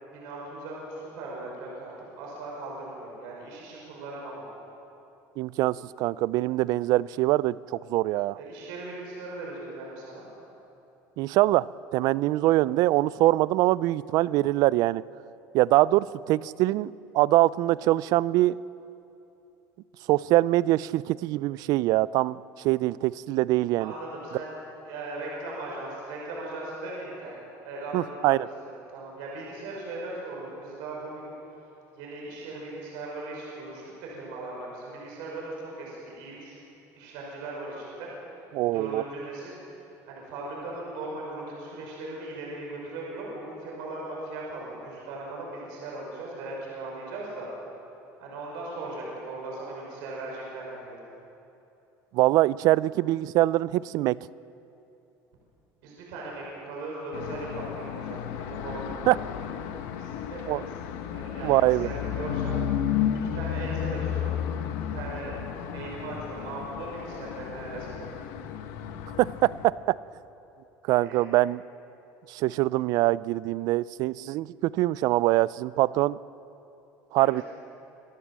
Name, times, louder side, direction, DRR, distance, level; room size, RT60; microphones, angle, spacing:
voice 1, 0.1-4.5 8.3-10.2 23.8-24.5 24.8-27.4 27.6-28.5 28.9-31.3 32.0-36.6 37.0-38.1 38.7-39.6 40.1-47.5 48.2-51.0 55.8-58.2 58.5-59.5 59.9-60.7 61.1-62.6 63.3-64.3 64.9-65.4 65.7-68.2 70.9-71.2 77.2-77.4, right 2 dB, 80° right, -3 dB, 5.9 m, -38 dB
voice 2, 5.4-8.4 11.2-15.0 15.5-18.6 20.1-22.4 22.6-23.9 27.9-28.5 38.5-39.0 52.1-54.2 59.1-59.2 60.5-60.6 61.4-61.9 69.2-70.0 70.9-71.6 72.3-76.2 77.1-77.4, right 17 dB, 60° right, 20 dB, 0.4 m, -23 dB
sound 1, 57.1-69.7, left 9 dB, 85° left, 1.3 m, -33 dB
26.0 x 14.5 x 7.5 m, 2.8 s
cardioid pair, 150°, 7 cm